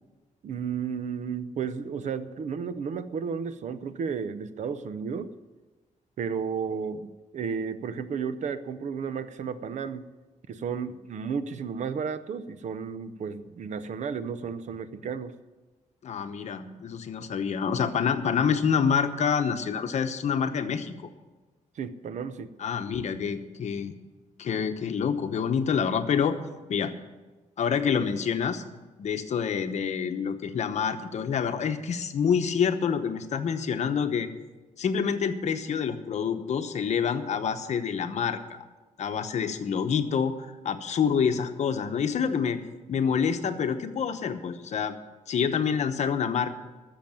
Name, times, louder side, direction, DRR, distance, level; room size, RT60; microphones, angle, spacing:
voice 1, 0.4-5.3 6.2-10.1 10.5-15.3 21.8-22.5 43.1-43.2, right 6 dB, 65° right, 13 dB, 0.7 m, -33 dB
voice 2, 16.0-21.1 22.6-23.9 24.4-26.4 26.7-26.9 27.6-28.6 29.0-34.3 34.8-38.4 39.0-42.6 42.9-45.0 45.3-46.5, left 7 dB, 60° left, 8 dB, 1.0 m, -27 dB
13.0 x 7.1 x 9.0 m, 1.2 s
wide cardioid pair, 160°, 13 cm